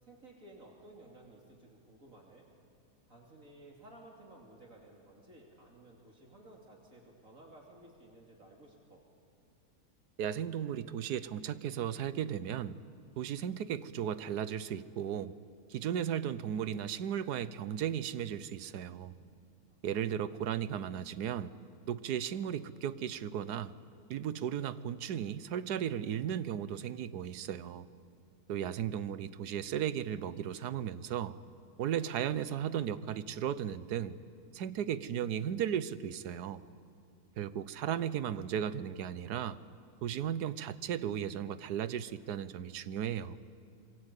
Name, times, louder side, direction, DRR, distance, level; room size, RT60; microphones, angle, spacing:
voice 1, 0.0-2.4 3.1-9.0 19.9-20.4 37.8-38.0, right 1 dB, 55° right, -1 dB, 3.2 m, -56 dB
voice 2, 10.2-12.8 13.2-15.4 15.7-19.2 19.8-21.5 21.9-23.8 24.1-27.9 28.5-31.4 31.8-34.2 34.5-36.6 37.4-39.6 40.0-43.4, right 9 dB, 75° right, 15 dB, 1.3 m, -35 dB
26.5 x 23.0 x 8.3 m, 2.4 s
omnidirectional pair, 1.7 m